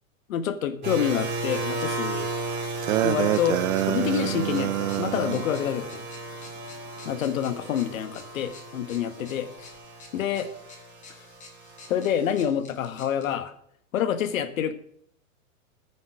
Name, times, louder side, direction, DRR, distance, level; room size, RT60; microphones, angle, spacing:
voice 1, 0.3-2.3 3.0-6.0 7.0-9.7 10.1-10.5 11.9-13.5 13.9-14.7, left 9 dB, 70° left, 11 dB, 1.6 m, -27 dB
sound 1, 0.8-12.4, right 2 dB, 25° right, 3.9 m, -35 dB
sound 2, 2.8-5.4, right 16 dB, 70° right, 0.5 m, -26 dB
sound 3, 3.0-13.3, left 3 dB, 15° left, 2.3 m, -51 dB
14.5 x 9.5 x 4.9 m, 0.68 s
hypercardioid pair, 145°, 42 cm